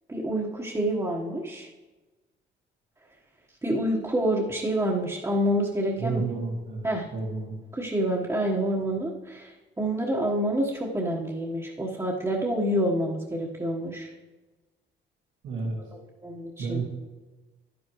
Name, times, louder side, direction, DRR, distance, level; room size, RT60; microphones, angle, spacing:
voice 1, 0.1-1.7 3.6-6.2 6.8-7.1 7.7-14.1 16.2-16.8, right 1 dB, 15° right, -4 dB, 1.3 m, -27 dB
voice 2, 6.0-6.8 7.1-7.6 15.4-15.8 16.6-16.8, right 4 dB, 80° right, -5 dB, 2.1 m, -30 dB
11.0 x 10.0 x 3.1 m, 1.2 s
cardioid pair, 90°, 20 cm